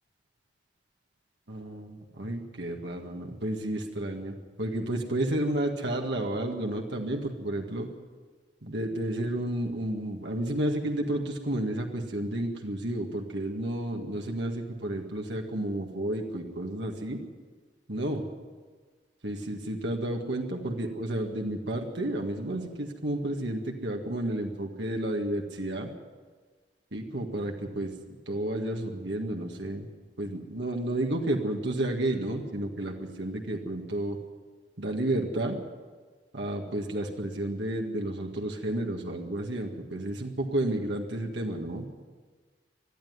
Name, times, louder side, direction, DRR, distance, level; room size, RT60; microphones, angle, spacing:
voice 1, 1.5-7.9 8.6-17.2 17.9-18.2 19.2-25.9 26.9-27.9 28.3-29.9 30.2-34.2 34.8-35.6 36.3-42.1, right 1 dB, 70° right, 2 dB, 1.9 m, -31 dB
20.5 x 13.0 x 9.7 m, 1.5 s
head